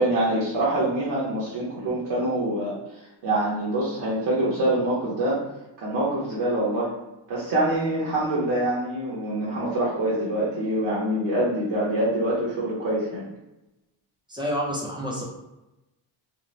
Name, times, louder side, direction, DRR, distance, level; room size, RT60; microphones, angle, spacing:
voice 1, 0.0-2.7 3.2-5.4 5.8-6.9 7.3-13.3, right 1 dB, 60° right, -7 dB, 0.8 m, -25 dB
voice 2, 14.3-15.2, equal, 10° right, -3 dB, 0.5 m, -28 dB
2.6 x 2.1 x 3.0 m, 0.97 s
cardioid pair, 150°, 47 cm